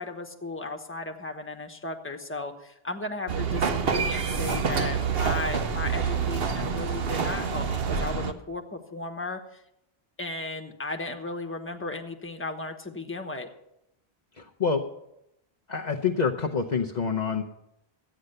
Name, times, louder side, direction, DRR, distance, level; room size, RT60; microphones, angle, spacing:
voice 1, 0.0-9.6 10.2-13.5, left 2 dB, 10° left, 4 dB, 1.2 m, -35 dB
sound 1, 3.3-8.3, right 6 dB, 65° right, 1.2 m, -27 dB
voice 2, 14.4-14.8 15.7-17.4, left 5 dB, 45° left, 1 dB, 0.9 m, -27 dB
13.0 x 9.3 x 6.7 m, 0.82 s
omnidirectional pair, 1.1 m